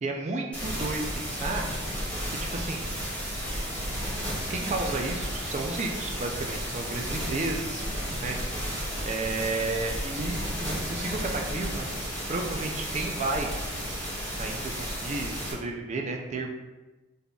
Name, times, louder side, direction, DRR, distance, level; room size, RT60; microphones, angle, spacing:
voice 1, 0.0-1.6 2.3-2.8 4.5-7.9 8.2-8.4 9.0-11.9 12.3-13.5 14.4-16.5, right 3 dB, 35° right, 3 dB, 0.4 m, -32 dB
Fuzzy static noise., 0.5-15.5, equal, 5° left, 1.4 m, -33 dB
3.9 x 3.4 x 2.3 m, 1.1 s
head